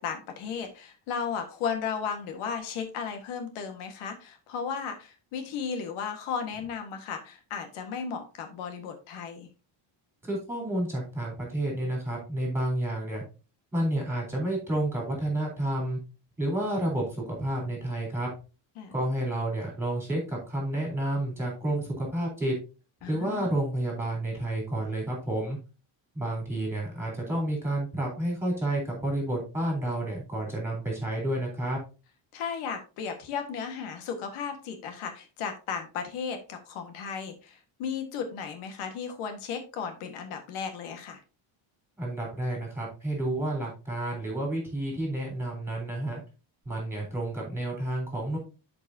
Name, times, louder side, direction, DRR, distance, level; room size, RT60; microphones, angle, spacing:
voice 1, 0.0-9.5 18.8-18.9 23.0-23.5 32.3-41.2, left 6 dB, 85° left, 6 dB, 1.8 m, -35 dB
voice 2, 10.2-13.2 13.7-16.0 16.4-18.3 18.9-22.5 23.1-25.6 26.1-31.8 42.0-46.2 46.7-48.4, right 1 dB, 5° right, -1 dB, 3.8 m, -30 dB
11.0 x 5.3 x 2.8 m, 0.32 s
cardioid pair, 175°, 49 cm